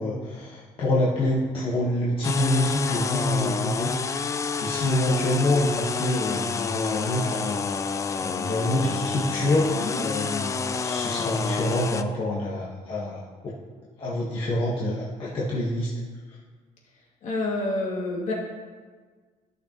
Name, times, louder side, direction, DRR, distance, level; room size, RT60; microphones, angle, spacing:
voice 1, 0.0-3.9 4.6-7.9 8.2-13.5 14.0-15.9, left 1 dB, 40° left, -6 dB, 1.3 m, -26 dB
sound 1, 2.2-12.0, left 5 dB, 20° left, 0.3 m, -29 dB
voice 2, 17.2-18.3, left 2 dB, 60° left, -4 dB, 2.5 m, -28 dB
14.5 x 6.5 x 3.0 m, 1.5 s
cardioid pair, 165°, 14 cm